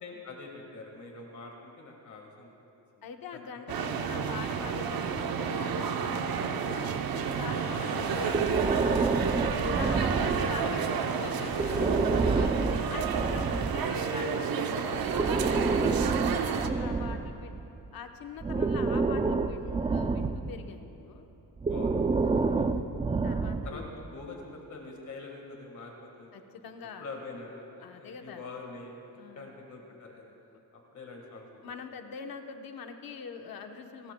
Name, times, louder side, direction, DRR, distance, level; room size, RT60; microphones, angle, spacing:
voice 1, 0.0-2.5 3.0-3.1 3.3-3.4 7.8-8.0 11.8-11.9 16.6-17.0 21.7-22.7 23.6-26.4 27.0-28.9 29.3-30.3 30.7-31.7, left 3 dB, 50° left, 1 dB, 1.7 m, -45 dB
voice 2, 3.0-7.0 7.3-9.4 9.7-11.9 12.3-15.9 16.4-21.2 22.2-22.8 23.2-23.9 26.3-27.0 27.8-28.4 29.2-29.5 31.6-34.1, left 6 dB, 65° left, 5 dB, 1.0 m, -43 dB
sound 1, 3.7-16.7, right 6 dB, 70° right, 0.8 m, -31 dB
sound 2, 4.2-15.7, right 1 dB, 35° right, 2.6 m, -46 dB
Breathing, 8.3-10.7 11.5-13.9 15.0-17.8 18.4-20.6 21.6-23.9, right 4 dB, 15° right, 0.3 m, -28 dB
30.0 x 13.0 x 2.2 m, 2.9 s
wide cardioid pair, 150°, 37 cm